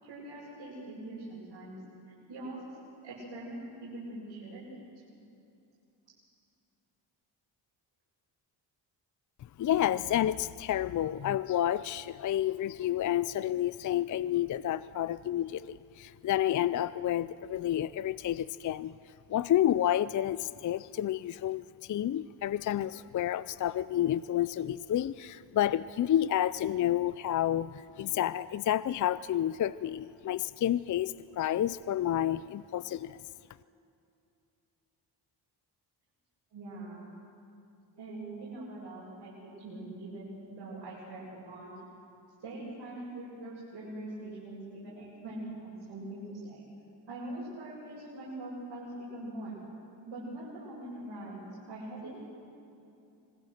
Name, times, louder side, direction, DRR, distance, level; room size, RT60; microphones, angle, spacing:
voice 1, 0.0-1.8 2.1-2.8 3.0-4.7 36.5-37.1 37.9-41.7 42.4-46.6 47.1-49.6 50.0-52.2, right 1 dB, 75° right, -9 dB, 8.0 m, -43 dB
voice 2, 9.6-18.9 19.3-33.2, left 11 dB, 45° left, 16 dB, 0.4 m, -30 dB
26.5 x 20.0 x 6.5 m, 2.6 s
cardioid pair, 95°, 44 cm